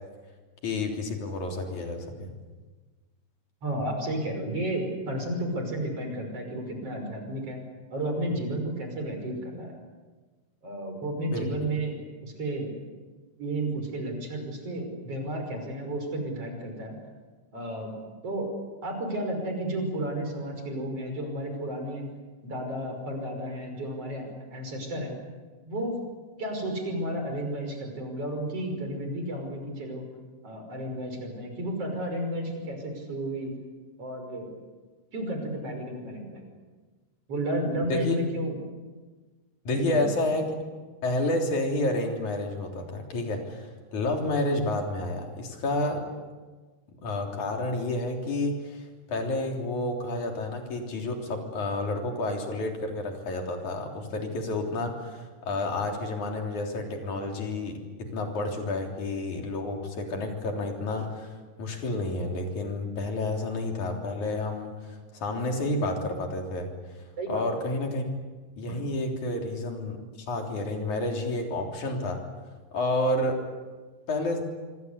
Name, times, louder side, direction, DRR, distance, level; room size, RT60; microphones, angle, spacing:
voice 1, 0.6-2.3 11.3-11.5 37.9-38.1 39.6-40.5 41.0-46.1 47.0-61.3 61.6-66.7 67.3-68.1 68.6-70.0 70.3-72.2 72.7-73.4 74.1-74.5, left 2 dB, 65° left, 2 dB, 4.8 m, -30 dB
voice 2, 3.6-7.6 7.9-9.7 10.6-12.7 13.4-17.0 17.5-18.0 18.2-18.5 18.8-22.0 22.4-25.2 25.7-25.9 26.4-30.1 30.4-33.5 34.0-34.5 35.1-36.5 37.3-38.5 39.7-40.1 67.2-67.4, right 1 dB, 45° right, 4 dB, 6.7 m, -32 dB
26.5 x 24.5 x 8.3 m, 1.3 s
omnidirectional pair, 3.7 m